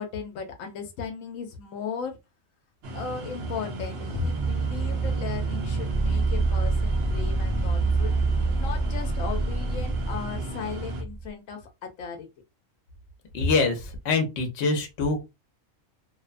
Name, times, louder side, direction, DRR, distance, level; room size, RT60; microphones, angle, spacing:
voice 1, 0.0-2.2 2.9-8.1 8.6-12.3, left 6 dB, 85° left, 1.0 m, -36 dB
sound 1, 2.8-11.0, right 2 dB, 60° right, 0.9 m, -36 dB
sound 2, 4.1-11.2, right 3 dB, 30° right, 0.8 m, -26 dB
voice 2, 13.3-15.3, left 3 dB, 60° left, 1.0 m, -25 dB
2.7 x 2.1 x 2.4 m
omnidirectional pair, 1.3 m